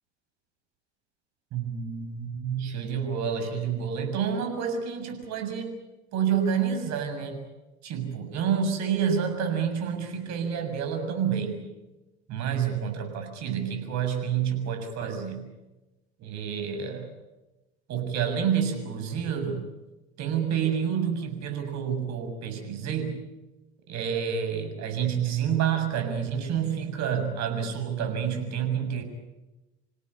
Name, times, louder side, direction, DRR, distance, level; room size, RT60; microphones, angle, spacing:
voice 1, 1.5-5.8 6.1-7.4 7.8-11.6 12.3-15.5 16.2-17.1 17.9-19.7 20.2-23.2 23.9-29.0, right 7 dB, 55° right, 6 dB, 6.9 m, -28 dB
28.0 x 17.5 x 9.8 m, 1.1 s
hypercardioid pair, 80°, 32 cm